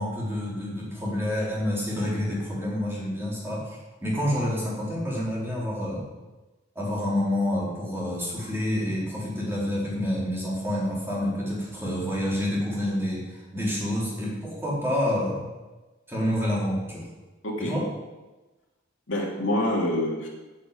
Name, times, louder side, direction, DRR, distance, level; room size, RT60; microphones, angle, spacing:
voice 1, 0.0-6.1 6.8-15.5 16.1-17.1 17.6-17.9, left 1 dB, 10° right, -6 dB, 4.2 m, -28 dB
voice 2, 17.4-17.8 19.1-20.3, left 1 dB, 70° left, -2 dB, 2.8 m, -26 dB
8.6 x 8.5 x 8.5 m, 1.2 s
head